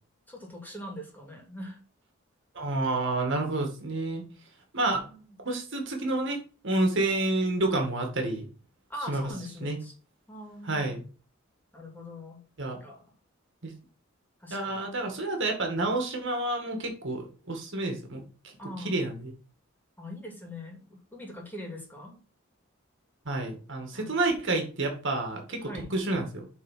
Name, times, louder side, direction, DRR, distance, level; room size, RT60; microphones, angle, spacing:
voice 1, 0.3-1.8 5.1-5.4 8.9-9.9 10.3-10.9 11.7-12.4 12.8-13.0 14.4-14.9 18.6-19.0 20.0-22.2 23.9-24.2 25.6-25.9, left 1 dB, 10° left, -1 dB, 2.6 m, -42 dB
voice 2, 2.6-4.2 4.7-5.1 5.5-6.4 6.6-8.5 9.1-9.2 9.6-9.8 10.6-11.0 12.6-12.8 13.6-13.7 14.5-18.2 18.8-19.3 23.3-26.5, right 2 dB, 60° right, 3 dB, 2.1 m, -29 dB
8.4 x 3.9 x 5.7 m, 0.38 s
head